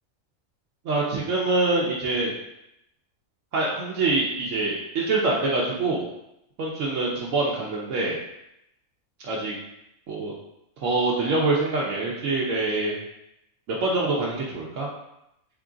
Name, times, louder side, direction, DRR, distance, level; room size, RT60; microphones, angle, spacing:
voice 1, 0.8-2.4 3.5-6.0 6.6-8.2 9.2-9.5 10.1-10.3 10.8-13.0 13.7-14.9, right 2 dB, 70° right, -4 dB, 0.9 m, -25 dB
3.7 x 2.4 x 3.7 m, 0.84 s
omnidirectional pair, 1.5 m